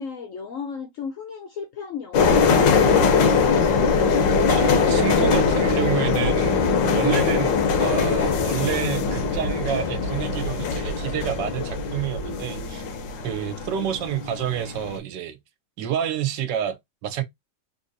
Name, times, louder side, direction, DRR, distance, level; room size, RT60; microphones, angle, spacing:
voice 1, 0.0-3.1, left 6 dB, 70° left, 0.7 m, -35 dB
sound 1, 2.1-15.0, left 5 dB, 85° left, 1.4 m, -21 dB
voice 2, 4.5-6.6 6.9-12.8 13.2-15.4 15.8-17.2, right 10 dB, 80° right, 1.3 m, -28 dB
3.5 x 2.7 x 2.6 m
omnidirectional pair, 1.9 m